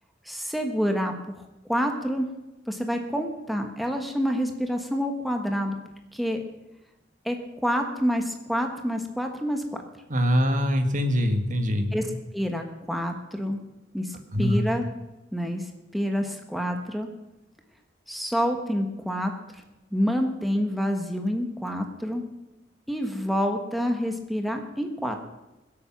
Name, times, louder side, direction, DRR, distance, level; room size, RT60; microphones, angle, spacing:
voice 1, 0.2-1.4 1.7-2.3 2.7-5.8 6.1-6.4 7.2-9.8 11.9-12.1 12.3-13.6 13.9-14.9 15.3-17.1 18.1-19.6 19.9-22.2 22.9-25.2, equal, ahead, 3 dB, 1.3 m, -28 dB
voice 2, 10.1-11.9 14.3-14.6, equal, 45° right, 6 dB, 1.6 m, -23 dB
22.0 x 8.6 x 6.1 m, 0.99 s
head